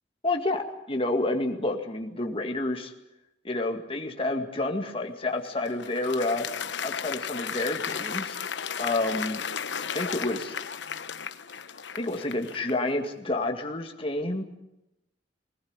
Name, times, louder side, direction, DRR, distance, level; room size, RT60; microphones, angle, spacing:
voice 1, 0.2-2.9 3.4-6.5 6.8-8.4 8.8-9.4 9.9-10.5 11.9-14.4, left 2 dB, 30° left, 3 dB, 2.1 m, -29 dB
Applause, 5.3-12.9, left 7 dB, 75° left, 1.0 m, -35 dB
21.0 x 19.5 x 9.7 m, 0.90 s
head